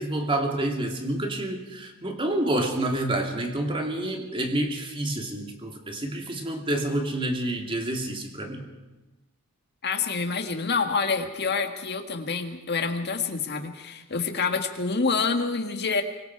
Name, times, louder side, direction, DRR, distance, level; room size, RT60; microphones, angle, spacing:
voice 1, 0.0-8.6, right 1 dB, 25° right, 2 dB, 2.6 m, -28 dB
voice 2, 9.8-16.0, left 4 dB, 50° left, 5 dB, 1.9 m, -27 dB
25.0 x 23.5 x 4.7 m, 1.1 s
head